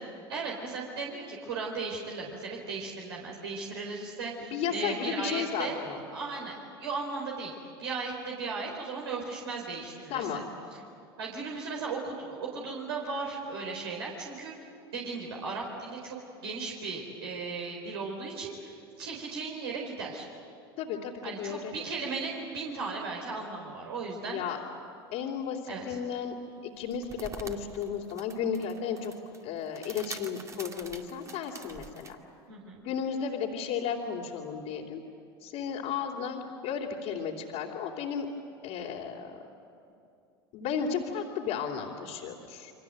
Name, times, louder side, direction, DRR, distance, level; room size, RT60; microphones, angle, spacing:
voice 1, 0.3-5.8 6.1-6.5 6.8-7.5 7.8-10.3 10.7-10.8 11.2-14.5 14.9-16.2 16.4-20.3 21.2-24.4 25.7-26.0 32.5-32.8, right 4 dB, 80° right, -2 dB, 4.2 m, -36 dB
voice 2, 4.4-6.0 10.1-10.5 20.8-21.7 24.2-24.6 25.1-26.3 26.8-29.1 29.4-32.2 32.8-35.0 35.4-38.3 38.6-39.3 40.5-42.7, left 7 dB, 60° left, -4 dB, 3.2 m, -34 dB
sound 1, 26.8-32.1, right 4 dB, 25° right, 2.2 m, -45 dB
29.5 x 24.0 x 7.8 m, 2.6 s
hypercardioid pair, 80°, 13 cm